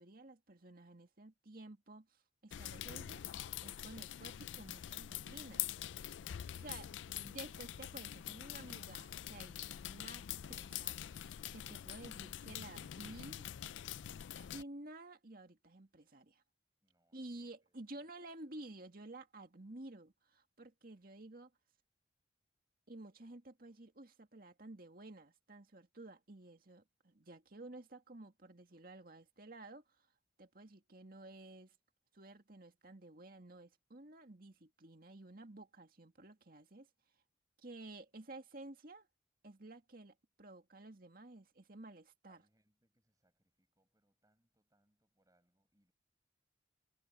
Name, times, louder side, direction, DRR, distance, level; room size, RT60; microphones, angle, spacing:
voice 1, 0.0-3.2 3.6-5.7 6.6-13.5 14.3-16.4 17.1-21.5 22.9-30.1 30.4-31.7 32.1-36.9 37.6-39.1 39.4-42.4, right 2 dB, 50° right, 2.2 m, -53 dB
sound 1, 2.5-14.6, left 11 dB, 80° left, 0.4 m, -45 dB
voice 2, 16.8-18.4 42.2-45.9, right 1 dB, 20° right, 7.4 m, -79 dB
head